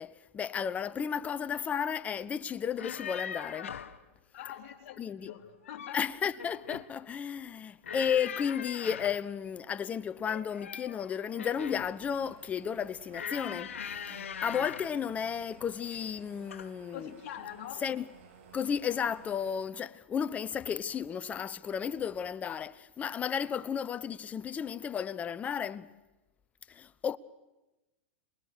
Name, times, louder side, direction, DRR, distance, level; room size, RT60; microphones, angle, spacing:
voice 1, 0.0-3.8 5.0-5.3 5.9-13.7 14.1-17.1 17.8-18.0 18.5-25.9 26.7-27.2, left 7 dB, 20° left, 0.7 m, -33 dB
sound 1, 2.6-4.0 5.4-6.0 6.4-6.9 7.8-9.3 10.2-11.9 13.1-15.0 15.9-16.2 16.5-16.7, left 7 dB, 90° left, 1.1 m, -41 dB
voice 2, 4.3-6.2 16.9-17.9, left 11 dB, 50° left, 3.2 m, -44 dB
sound 2, 11.6-19.6, right 6 dB, 65° right, 3.2 m, -56 dB
27.5 x 20.5 x 6.6 m
hypercardioid pair, 125°, 7 cm